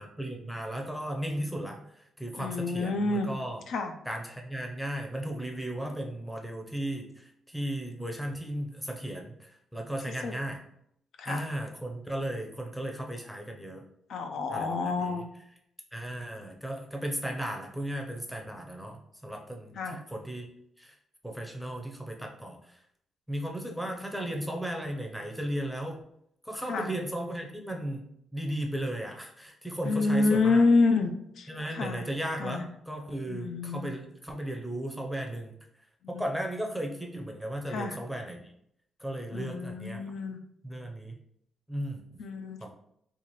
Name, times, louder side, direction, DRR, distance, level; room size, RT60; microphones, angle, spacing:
voice 1, 0.0-3.6 4.1-10.6 11.3-13.8 14.5-15.1 15.9-20.5 20.8-21.0 21.2-22.8 23.3-26.0 26.5-30.6 31.5-35.5 36.1-38.5 39.0-40.0 40.6-41.1 41.7-42.0 42.6-42.7, right 1 dB, ahead, 1 dB, 0.6 m, -35 dB
voice 2, 2.4-3.3 3.7-3.9 10.2-10.3 11.2-11.5 14.1-15.2 19.8-20.0 26.7-26.9 29.8-31.1 31.4-32.0 32.4-32.7 33.3-33.9 36.1-36.2 37.7-38.0 39.3-40.4 42.2-42.6, left 3 dB, 75° left, 6 dB, 0.4 m, -28 dB
4.2 x 2.4 x 3.0 m, 0.72 s
cardioid pair, 130°, 0 cm